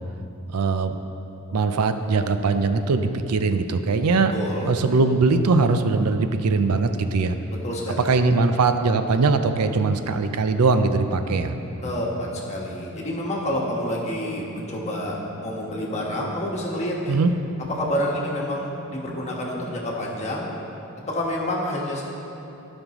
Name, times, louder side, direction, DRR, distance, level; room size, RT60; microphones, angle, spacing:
voice 1, 0.5-1.0 1.5-4.4 4.6-7.4 8.0-11.5 17.1-17.3, right 3 dB, 85° right, 9 dB, 0.5 m, -21 dB
voice 2, 4.3-4.7 7.6-8.1 11.8-17.2 17.8-20.5 21.1-22.0, left 1 dB, 30° left, -4 dB, 1.4 m, -28 dB
sound 1, 10.9-19.8, equal, 30° right, 1.6 m, -41 dB
15.5 x 5.3 x 3.0 m, 2.9 s
head